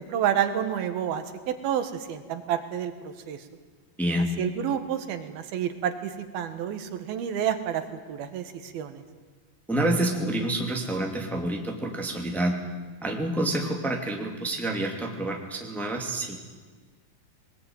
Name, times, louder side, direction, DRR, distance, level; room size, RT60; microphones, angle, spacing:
voice 1, 0.0-2.9 3.3-3.4 4.4-7.8 8.1-9.0, right 9 dB, 85° right, 9 dB, 3.4 m, -29 dB
voice 2, 4.0-4.3 9.7-12.6 13.0-16.4, right 1 dB, ahead, 1 dB, 2.0 m, -28 dB
22.0 x 20.5 x 9.3 m, 1.4 s
omnidirectional pair, 4.2 m